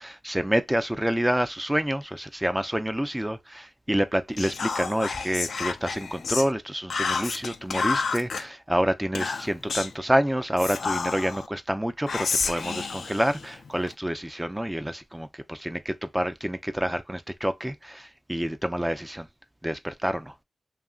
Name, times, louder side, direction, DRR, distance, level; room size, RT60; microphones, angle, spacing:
voice 1, 0.0-19.3 19.6-20.3, equal, 10° right, 0.4 m, -28 dB
Whispering, 4.4-6.5 6.9-8.4 9.1-10.0 10.6-11.5 12.1-13.9, left 5 dB, 85° left, 0.3 m, -30 dB
2.8 x 2.4 x 2.3 m
cardioid pair, 45°, 0 cm